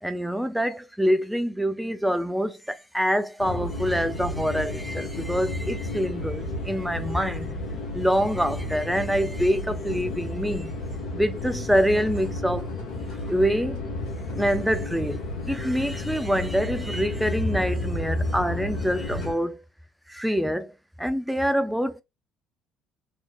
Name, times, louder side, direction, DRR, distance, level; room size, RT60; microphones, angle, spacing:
voice 1, 0.0-7.5 7.9-10.7 11.1-12.7 13.3-13.8 14.3-19.6 20.1-20.7 21.0-22.0, equal, 5° right, 0.5 m, -25 dB
sound 1, 3.4-19.3, left 2 dB, 65° left, 1.1 m, -32 dB
3.0 x 2.8 x 2.5 m
figure-of-eight pair, 55°, 0 cm